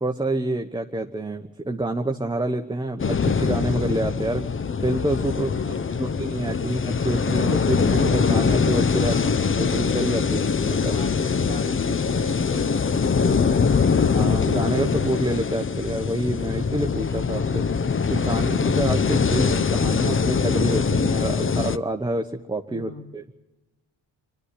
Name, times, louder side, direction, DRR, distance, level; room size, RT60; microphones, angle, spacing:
voice 1, 0.0-4.5 4.8-9.2 9.6-10.9 14.1-17.7 18.1-23.2, right 1 dB, 10° right, 4 dB, 1.1 m, -27 dB
sound 1, 3.0-21.8, left 5 dB, 30° left, 0.7 m, -23 dB
voice 2, 5.3-6.1 9.0-9.4 10.8-14.0 22.7-23.0, left 2 dB, 50° left, 1 dB, 2.3 m, -39 dB
24.0 x 12.0 x 10.0 m, 1.0 s
supercardioid pair, 55°, 45 cm